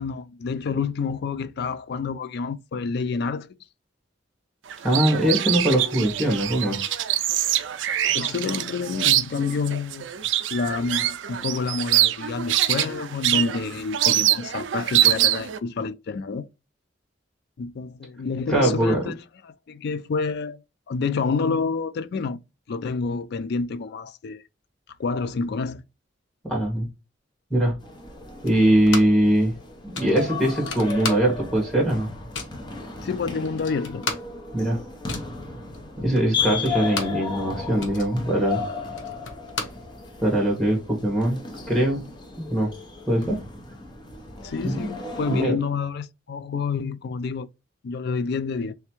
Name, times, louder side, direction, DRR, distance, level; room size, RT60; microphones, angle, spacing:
voice 1, 0.0-3.5 8.1-10.1 10.5-16.5 17.6-19.2 19.4-20.6 20.9-22.4 22.7-24.4 25.0-25.8 33.0-34.1 44.4-47.5 47.8-48.7, left 4 dB, 60° left, 0.4 m, -28 dB
sound 1, 4.7-15.6, right 13 dB, 75° right, 0.4 m, -24 dB
voice 2, 4.8-6.9 18.5-19.1 26.4-26.9 27.5-27.7 28.4-29.5 29.8-32.1 34.5-34.8 36.0-38.6 40.2-41.4 41.7-42.1 42.4-42.7 43.1-43.4 44.6-45.0 45.3-45.6, right 1 dB, 5° left, 1.6 m, -22 dB
sound 2, 27.8-45.5, left 4 dB, 25° left, 0.8 m, -35 dB
sound 3, 28.5-29.3 29.6-29.7 29.9-31.6 31.9-32.6 33.2-33.3 33.5-37.3 37.6-40.4, left 4 dB, 90° left, 1.0 m, -34 dB
3.5 x 3.2 x 3.0 m
head